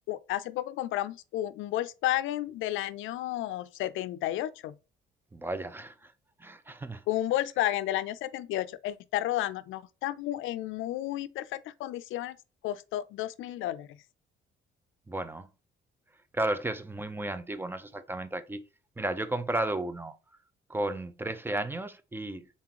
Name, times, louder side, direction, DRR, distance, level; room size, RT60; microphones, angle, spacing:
voice 1, 0.1-4.7 7.1-12.4 12.6-14.0, left 14 dB, 80° left, 0.4 m, -32 dB
voice 2, 5.3-6.1 6.4-7.0 15.1-15.5 16.3-18.7 19.0-20.2 20.7-22.5, right 2 dB, 10° right, 0.5 m, -33 dB
4.1 x 3.7 x 2.9 m
cardioid pair, 95°, 20 cm